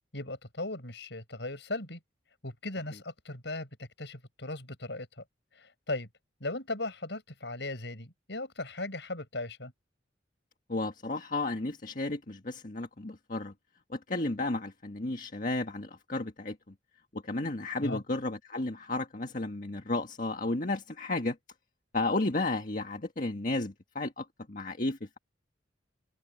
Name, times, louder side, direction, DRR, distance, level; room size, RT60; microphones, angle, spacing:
voice 1, 0.1-2.0 2.4-5.2 5.5-6.1 6.4-9.7 17.8-18.0, left 2 dB, 65° left, 7.8 m, -38 dB
voice 2, 10.7-13.5 13.9-16.7 17.1-21.4 21.9-25.2, left 2 dB, 45° left, 1.7 m, -33 dB
head